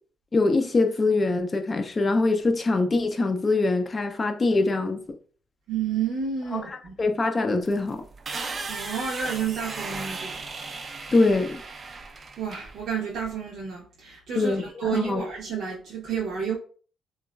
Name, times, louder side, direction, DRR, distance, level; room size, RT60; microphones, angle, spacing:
voice 1, 0.3-5.0 6.5-6.6 7.0-8.0 11.1-11.6 14.4-15.2, left 3 dB, 30° left, 0.4 m, -23 dB
voice 2, 5.7-7.0 8.7-10.4 12.4-16.6, right 7 dB, 75° right, 0.7 m, -30 dB
sound 1, 7.7-13.3, right 4 dB, 40° right, 0.3 m, -36 dB
2.9 x 2.3 x 2.2 m
cardioid pair, 90°, 0 cm